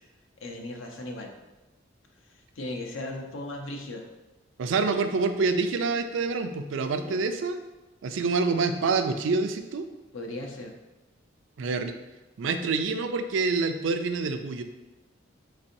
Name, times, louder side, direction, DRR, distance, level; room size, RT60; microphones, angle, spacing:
voice 1, 0.4-1.3 2.6-4.0 6.9-7.3 10.1-10.7, left 1 dB, 80° left, 2 dB, 0.7 m, -37 dB
voice 2, 4.6-7.6 8.0-9.9 11.6-11.9 12.4-14.6, right 4 dB, 75° right, 8 dB, 0.4 m, -27 dB
4.3 x 4.2 x 2.6 m, 1.1 s
head